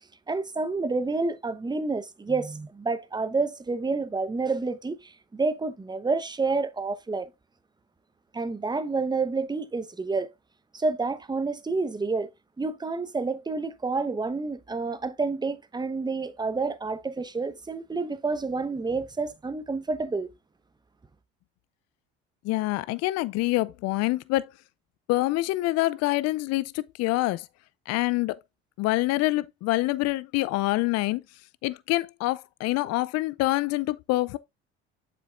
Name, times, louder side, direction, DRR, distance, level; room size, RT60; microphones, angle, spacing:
voice 1, 0.3-7.3 8.3-10.3 10.7-12.3 12.6-20.3, right 3 dB, 15° right, 0.9 m, -29 dB
voice 2, 22.4-24.5 25.1-27.5 27.9-28.3 28.8-31.2 31.6-34.4, left 19 dB, 60° left, 0.5 m, -26 dB
7.5 x 6.1 x 2.5 m
hypercardioid pair, 65°, 30 cm